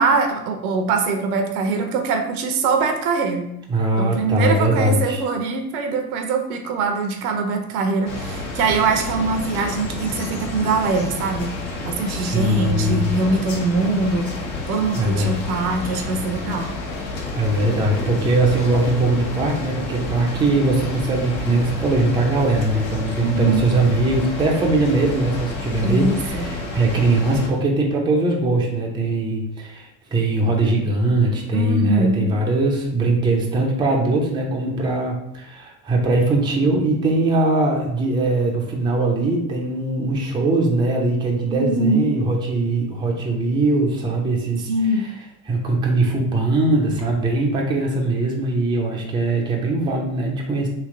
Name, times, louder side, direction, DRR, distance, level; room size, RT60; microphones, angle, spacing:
voice 1, 0.0-3.5 4.0-11.5 11.8-14.4 14.7-16.7 23.2-23.7 25.8-26.5 31.5-32.3 41.5-42.1 44.7-45.0, right 3 dB, 60° right, 5 dB, 0.8 m, -22 dB
voice 2, 3.7-5.2 12.1-13.1 14.9-15.3 17.3-45.1 45.5-50.7, right 2 dB, 10° right, -1 dB, 0.6 m, -21 dB
sound 1, 8.1-27.5, left 2 dB, 50° left, 1.2 m, -30 dB
3.3 x 2.8 x 3.8 m, 0.79 s
hypercardioid pair, 90°, 50 cm